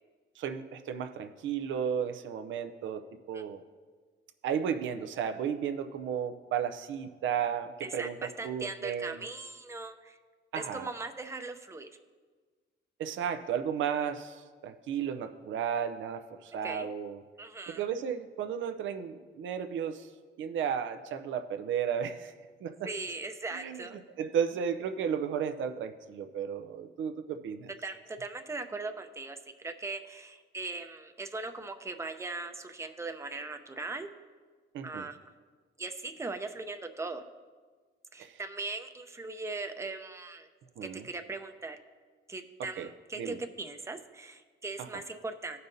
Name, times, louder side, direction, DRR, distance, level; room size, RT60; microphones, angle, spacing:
voice 1, 0.4-3.6 4.4-8.2 8.4-9.2 10.5-10.9 13.0-17.2 17.8-20.1 20.4-22.3 22.6-22.7 23.5-27.7 34.7-35.1 38.2-38.3 40.8-41.0 42.8-42.9 43.2-43.4, right 8 dB, 75° right, 9 dB, 0.6 m, -34 dB
voice 2, 7.8-10.2 10.5-11.9 16.6-16.9 17.4-17.9 22.8-24.0 27.8-34.1 34.8-35.2 35.8-37.2 38.1-40.5 41.0-41.8 42.3-45.6, right 3 dB, 15° right, 6 dB, 0.7 m, -39 dB
15.5 x 5.4 x 2.7 m, 1.5 s
cardioid pair, 90°, 20 cm